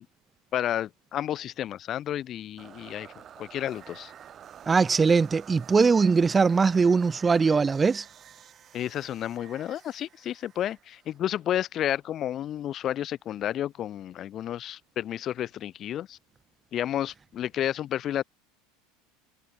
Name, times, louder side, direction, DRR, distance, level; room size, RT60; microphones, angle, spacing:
voice 1, 0.5-3.1 3.4-4.1 8.7-16.2 16.7-18.2, left 11 dB, 40° left, 1.6 m, -31 dB
sound 1, 2.6-11.6, right 9 dB, 35° right, 6.8 m, -50 dB
voice 2, 4.7-8.1, right 5 dB, 20° right, 0.8 m, -21 dB
figure-of-eight pair, 75°, 0 cm